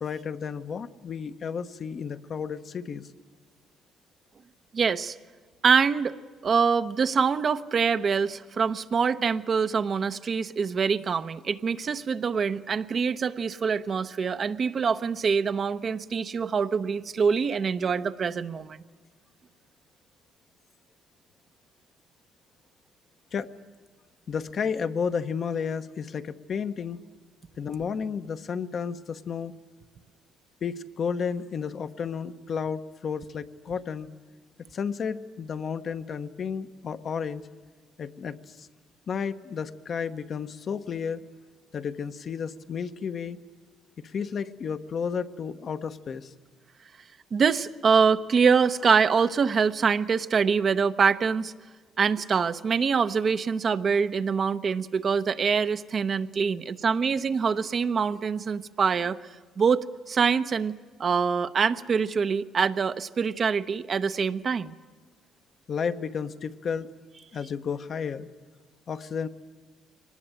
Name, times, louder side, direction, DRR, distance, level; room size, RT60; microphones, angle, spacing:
voice 1, 0.0-3.1 23.3-23.5 24.3-27.0 27.6-29.5 30.6-34.1 34.7-37.4 38.0-38.7 39.1-41.2 41.7-43.4 44.0-46.3 65.7-66.9 67.3-68.3 68.9-69.3, left 6 dB, 50° left, 9 dB, 1.0 m, -32 dB
voice 2, 4.7-5.1 5.6-18.8 47.3-51.5 52.0-59.2 59.6-60.7 61.0-64.7, right 6 dB, 45° right, 11 dB, 0.8 m, -25 dB
23.0 x 19.5 x 8.9 m, 1.4 s
cardioid pair, 95°, 0 cm